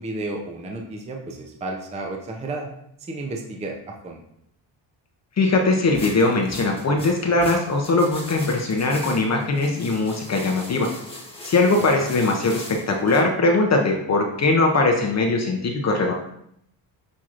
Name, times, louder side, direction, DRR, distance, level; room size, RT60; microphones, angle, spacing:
voice 1, 0.0-2.7 3.1-3.8 4.0-4.2, right 2 dB, 15° right, 1 dB, 0.5 m, -32 dB
voice 2, 5.4-10.9 11.4-16.1, left 2 dB, 35° left, 1 dB, 0.6 m, -20 dB
sound 1, 5.9-13.2, left 1 dB, 10° left, 1.1 m, -39 dB
6.1 x 2.9 x 2.5 m, 0.74 s
cardioid pair, 100°, 47 cm